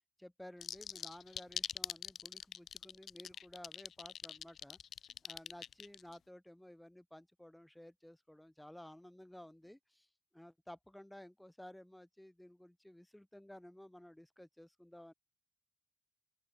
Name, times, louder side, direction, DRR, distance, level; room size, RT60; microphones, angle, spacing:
voice 1, 0.2-4.8 5.2-10.1 10.3-15.1, left 1 dB, 5° left, 2.8 m, -55 dB
sound 1, 0.6-6.2, left 8 dB, 60° left, 2.9 m, -43 dB
open air
cardioid pair, 90°, 0 cm